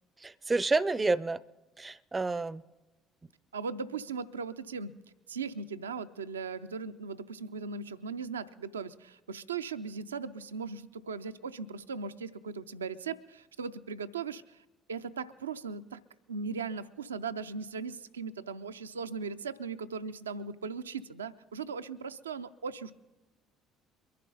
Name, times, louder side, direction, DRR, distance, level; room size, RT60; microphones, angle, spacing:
voice 1, 0.2-1.4 1.8-2.6, right 3 dB, 20° right, 21 dB, 0.4 m, -29 dB
voice 2, 3.5-5.0 5.3-16.0 16.3-22.9, right 5 dB, 85° right, 12 dB, 0.4 m, -38 dB
23.0 x 11.0 x 3.9 m, 1.1 s
figure-of-eight pair, 55°, 0 cm